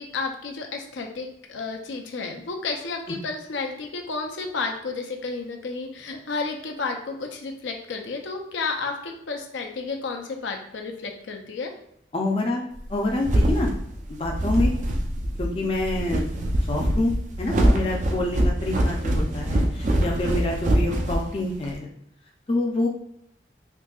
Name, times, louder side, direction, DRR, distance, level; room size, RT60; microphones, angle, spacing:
voice 1, 0.0-11.7, left 4 dB, 90° left, 3 dB, 0.5 m, -32 dB
voice 2, 12.1-12.6 12.9-13.7 14.1-14.7 15.4-16.2 16.7-17.1 17.4-21.9 22.5-22.9, left 2 dB, 30° left, 0 dB, 0.4 m, -26 dB
sound 1, 12.8-21.7, right 1 dB, 40° right, 0.4 m, -24 dB
3.7 x 2.7 x 2.3 m, 0.73 s
head